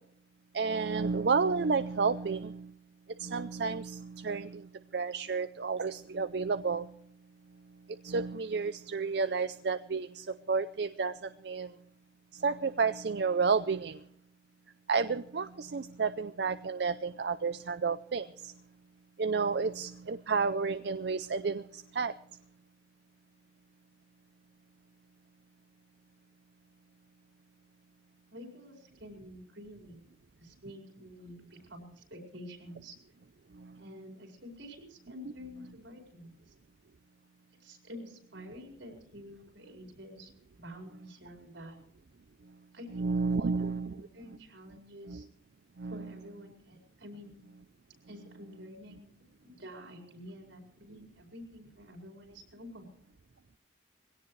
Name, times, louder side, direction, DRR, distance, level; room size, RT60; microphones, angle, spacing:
voice 1, 0.5-2.7 3.2-7.0 7.9-11.7 12.3-14.0 14.9-18.5 19.2-22.1 33.5-33.8 42.9-43.9 45.1-45.2 45.8-46.0, right 4 dB, 65° right, 11 dB, 0.5 m, -31 dB
voice 2, 28.3-30.0 30.4-32.9 33.7-36.5 37.5-40.3 40.6-41.8 42.7-45.3 45.8-47.4 48.1-49.1 49.4-52.9, equal, 85° right, 3 dB, 4.9 m, -49 dB
21.5 x 17.0 x 3.2 m, 0.64 s
head